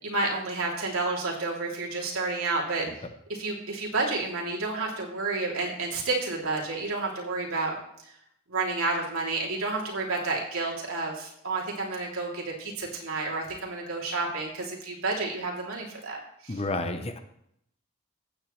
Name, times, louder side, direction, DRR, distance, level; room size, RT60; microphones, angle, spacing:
voice 1, 0.0-2.8 3.3-7.8 8.5-16.2 16.4-16.6, right 3 dB, 85° right, -2 dB, 3.0 m, -30 dB
voice 2, 16.5-17.2, left 2 dB, 30° left, 8 dB, 0.8 m, -31 dB
15.5 x 8.9 x 3.2 m, 0.75 s
head